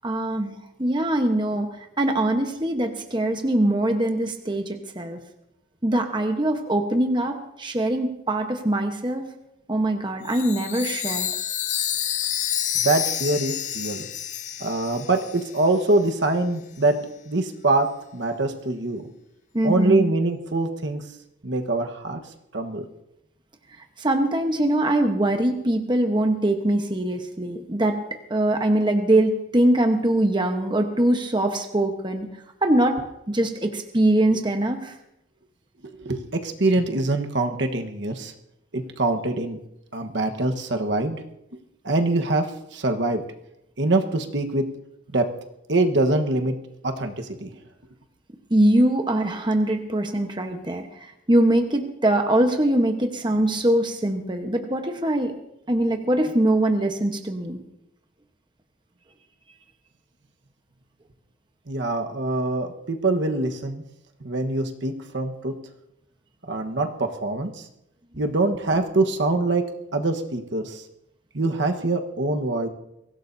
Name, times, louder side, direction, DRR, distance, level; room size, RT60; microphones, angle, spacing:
voice 1, 0.0-5.2 5.8-9.3 9.7-11.3 19.5-20.1 24.0-28.0 28.3-32.3 32.6-33.0 33.3-34.9 48.5-55.3 55.7-57.6, right 1 dB, 25° right, 4 dB, 1.1 m, -22 dB
Chime, 10.3-15.8, left 10 dB, 35° left, 0.6 m, -29 dB
voice 2, 12.7-14.1 14.6-17.0 17.2-17.9 18.1-19.1 19.6-21.0 21.4-22.2 22.5-22.8 36.0-38.3 38.7-39.6 39.9-41.2 41.8-43.2 43.8-44.6 45.1-45.3 45.7-46.5 46.8-47.6 61.7-63.8 64.2-65.5 66.5-67.7 68.2-69.7 69.9-70.8 71.3-72.7, right 2 dB, 65° right, 4 dB, 1.3 m, -24 dB
23.0 x 16.5 x 2.7 m, 0.83 s
head